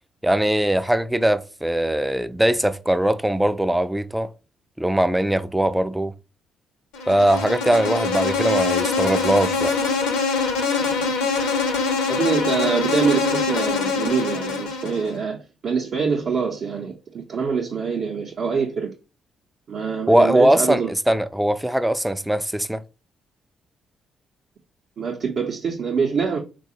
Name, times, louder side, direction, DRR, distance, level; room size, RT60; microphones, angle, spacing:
voice 1, 0.2-4.3 4.8-6.1 7.1-9.8 20.1-22.8, right 1 dB, 5° right, 0.3 m, -20 dB
Insect, 6.9-15.2, left 4 dB, 75° left, 0.7 m, -24 dB
voice 2, 10.8-11.2 12.1-18.9 19.7-20.9 25.0-26.4, right 5 dB, 55° right, 0.6 m, -25 dB
3.9 x 2.3 x 2.8 m
hypercardioid pair, 40°, 0 cm